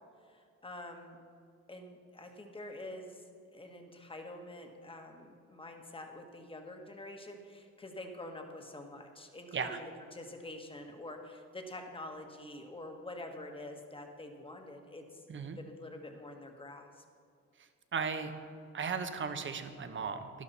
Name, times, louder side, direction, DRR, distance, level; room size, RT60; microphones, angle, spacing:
voice 1, 0.3-1.2 1.7-3.2 3.5-15.2 15.6-17.0, left 1 dB, 15° left, 3 dB, 1.5 m, -46 dB
voice 2, 17.9-18.3 18.7-20.4, right 5 dB, 40° right, 8 dB, 1.0 m, -36 dB
11.5 x 11.5 x 4.2 m, 2.2 s
cardioid pair, 90°, 30 cm